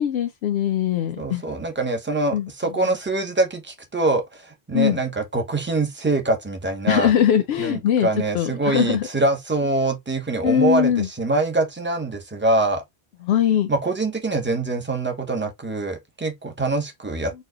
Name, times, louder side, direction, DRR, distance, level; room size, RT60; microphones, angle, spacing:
voice 1, 0.0-1.4 2.3-2.5 4.7-5.0 6.9-8.1 8.3-9.0 10.4-11.1 13.2-13.7, left 9 dB, 90° left, 0.8 m, -21 dB
voice 2, 1.2-7.1 7.6-12.8 13.7-17.3, right 2 dB, 10° right, 0.8 m, -24 dB
4.3 x 2.3 x 3.8 m
omnidirectional pair, 1.0 m